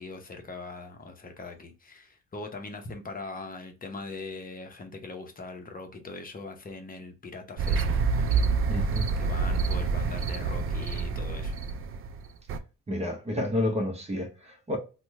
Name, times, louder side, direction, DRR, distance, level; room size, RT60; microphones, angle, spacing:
voice 1, 0.0-7.8 8.1-8.4 8.8-11.6, left 3 dB, 30° left, 0.8 m, -41 dB
sound 1, 7.6-12.6, right 4 dB, 45° right, 0.5 m, -27 dB
voice 2, 8.7-9.1 12.9-14.8, left 1 dB, 20° right, 0.8 m, -30 dB
2.9 x 2.2 x 3.5 m
cardioid pair, 90°, 30 cm